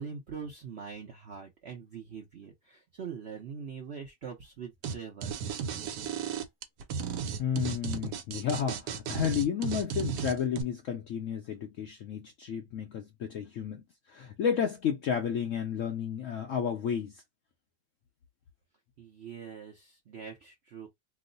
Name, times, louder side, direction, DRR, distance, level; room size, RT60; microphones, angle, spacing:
voice 1, 0.0-5.4 19.0-20.9, right 6 dB, 60° right, 0.7 m, -43 dB
sound 1, 4.8-4.9 5.2-10.6, right 7 dB, 75° right, 1.2 m, -34 dB
voice 2, 7.4-17.2, left 8 dB, 75° left, 0.7 m, -32 dB
3.0 x 2.0 x 3.8 m
omnidirectional pair, 1.9 m